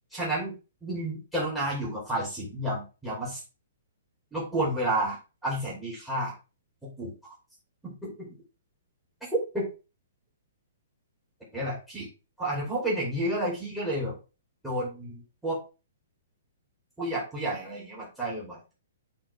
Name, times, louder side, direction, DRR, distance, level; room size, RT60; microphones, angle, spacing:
voice 1, 0.1-0.5 0.8-3.4 4.3-5.2 5.4-6.3 6.8-7.1 7.8-8.3 11.5-12.1 12.4-14.1 14.6-15.6 17.0-18.6, right 1 dB, 5° right, -6 dB, 3.3 m, -31 dB
8.8 x 4.0 x 3.5 m, 0.31 s
hypercardioid pair, 150°, 0 cm